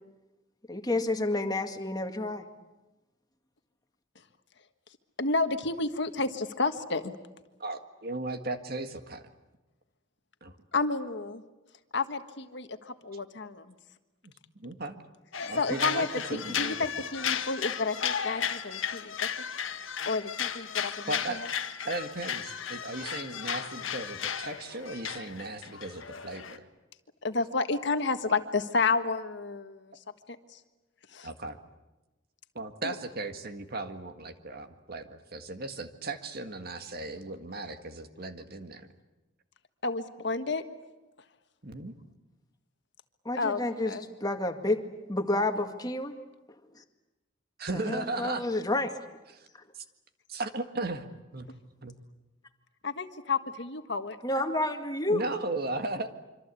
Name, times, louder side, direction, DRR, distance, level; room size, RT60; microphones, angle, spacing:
voice 1, 0.7-2.5 43.3-43.9 44.2-44.8 45.1-46.2 46.8-46.9 47.7-48.9 54.2-55.2, left 2 dB, 20° left, 6 dB, 2.0 m, -29 dB
voice 2, 5.2-7.1 10.7-11.4 11.9-13.6 15.6-19.3 20.0-21.5 27.2-29.9 30.5-30.6 31.1-31.3 32.8-32.9 39.8-40.6 43.3-43.6 43.8-44.0 52.8-54.2, left 3 dB, 60° left, 8 dB, 1.5 m, -31 dB
voice 3, 7.6-9.3 10.4-10.6 14.2-15.0 15.4-16.8 21.1-21.4 21.8-26.7 31.2-31.6 32.6-38.9 41.6-41.9 47.6-48.5 49.3-49.5 49.7-49.8 50.3-51.5 51.8-52.0 55.1-56.1, right 2 dB, 50° right, 8 dB, 1.8 m, -36 dB
sound 1, 15.3-26.6, left 8 dB, 80° left, 1.7 m, -34 dB
26.0 x 25.5 x 8.4 m, 1.1 s
head